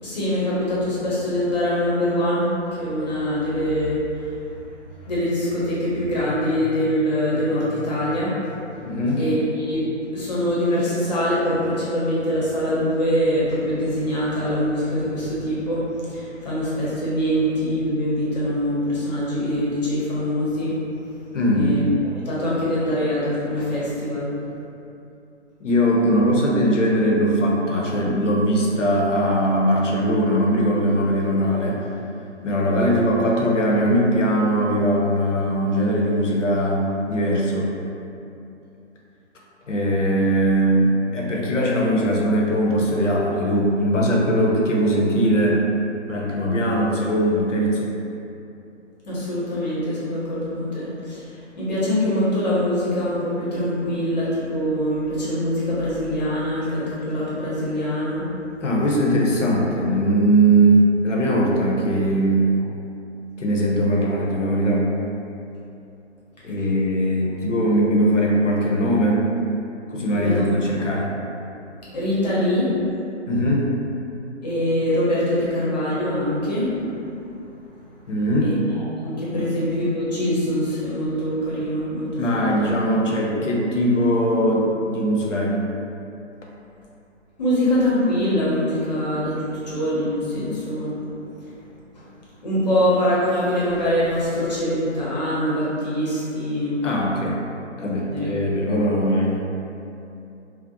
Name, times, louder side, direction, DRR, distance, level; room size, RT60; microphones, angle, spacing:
voice 1, 0.0-4.4 5.0-8.4 9.2-20.8 21.5-24.3 49.1-58.3 70.1-70.4 71.9-72.7 74.4-77.1 78.4-82.5 87.4-91.0 91.4-91.5 91.9-92.1 92.4-96.8 98.1-98.3, equal, 35° left, -8 dB, 0.7 m, -24 dB
voice 2, 8.8-9.2 21.3-21.7 25.6-31.9 32.4-37.7 39.7-45.6 46.1-47.9 58.6-62.5 63.4-64.9 66.4-69.3 69.9-71.1 73.3-73.7 78.1-78.6 79.3-79.4 82.2-85.6 96.8-97.4 97.8-99.4, right 1 dB, 85° left, -2 dB, 0.6 m, -20 dB
2.5 x 2.0 x 2.6 m, 2.7 s
figure-of-eight pair, 140°, 36 cm